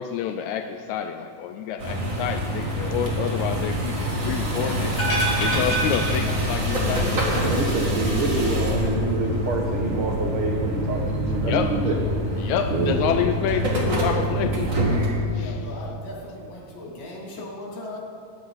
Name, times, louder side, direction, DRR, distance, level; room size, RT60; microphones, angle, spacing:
voice 1, 0.0-5.0 5.4-7.6 8.3-8.7 11.4-11.8 12.4-14.9 15.3-15.7 17.4-17.5, left 9 dB, 90° left, 6 dB, 1.6 m, -29 dB
sound 1, 1.8-15.1, equal, 35° right, 1.5 m, -25 dB
sound 2, 5.0-6.9 7.1-7.2, right 1 dB, 45° left, 3.9 m, -26 dB
voice 2, 7.4-11.9 12.7-13.1, right 3 dB, 75° right, 0 dB, 1.2 m, -26 dB
voice 3, 15.3-18.0, left 1 dB, 70° left, -3 dB, 4.0 m, -37 dB
17.0 x 9.8 x 4.0 m, 2.3 s
omnidirectional pair, 3.9 m